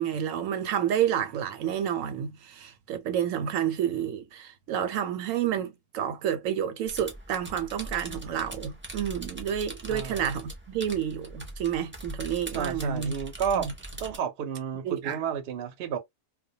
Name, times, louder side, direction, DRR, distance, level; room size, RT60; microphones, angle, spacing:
voice 1, 0.0-13.1 13.5-13.7 14.8-15.2, right 9 dB, 85° right, 1.0 m, -30 dB
sound 1, 6.9-14.2, right 1 dB, 20° right, 0.3 m, -41 dB
voice 2, 9.9-10.2 12.5-13.7 14.0-16.0, right 7 dB, 60° right, 0.8 m, -31 dB
2.2 x 2.1 x 2.7 m
omnidirectional pair, 1.3 m